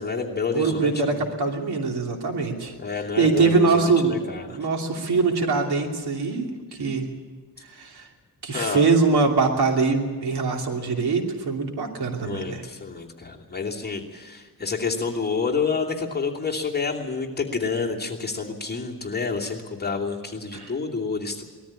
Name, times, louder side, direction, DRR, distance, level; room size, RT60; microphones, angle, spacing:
voice 1, 0.0-1.3 2.8-4.6 8.5-8.9 12.2-21.4, left 5 dB, 25° left, -2 dB, 2.7 m, -29 dB
voice 2, 0.5-2.7 3.2-4.2 4.5-6.5 6.8-7.1 7.7-8.1 8.4-12.6 20.5-20.7, right 4 dB, 80° right, 2 dB, 2.9 m, -23 dB
20.0 x 13.5 x 9.8 m, 1.4 s
wide cardioid pair, 105°, 38 cm